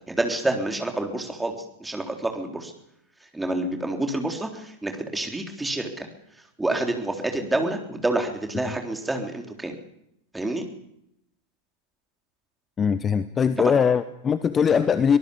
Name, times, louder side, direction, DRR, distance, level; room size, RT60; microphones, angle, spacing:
voice 1, 0.1-2.7 3.3-6.1 6.6-9.7 10.3-10.7, right 2 dB, 5° right, 3 dB, 3.6 m, -28 dB
voice 2, 12.8-15.2, left 7 dB, 20° left, 13 dB, 1.0 m, -21 dB
24.5 x 18.5 x 7.0 m, 0.78 s
figure-of-eight pair, 90°, 0 cm